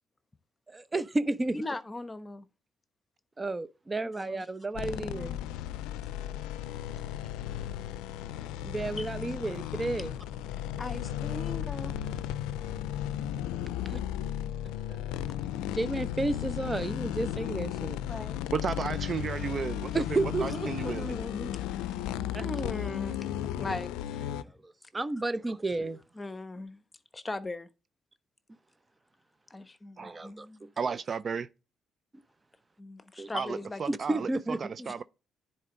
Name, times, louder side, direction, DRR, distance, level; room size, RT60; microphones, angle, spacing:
voice 1, 0.7-1.6 3.4-5.4 8.6-10.1 13.9-14.0 14.9-15.0 15.6-18.0 19.9-21.1 22.3-22.5 24.6-26.0 30.0-30.5 33.2-33.3 33.9-34.6, right 2 dB, 25° right, 0.9 m, -32 dB
voice 2, 1.5-2.5 4.2-4.4 9.0-9.1 10.8-11.9 18.1-18.4 20.9-22.0 22.4-23.2 23.6-24.5 26.2-26.8 27.1-27.7 29.5-30.7 32.8-33.8 34.1-34.2 34.8-34.9, left 2 dB, 25° left, 1.0 m, -39 dB
sound 1, 4.7-24.4, left 11 dB, 90° left, 0.4 m, -35 dB
voice 3, 18.5-20.0 20.4-21.1 30.0-30.2 30.8-31.5 33.3-35.0, right 6 dB, 50° right, 0.5 m, -33 dB
10.0 x 4.4 x 3.9 m
supercardioid pair, 60°, 0 cm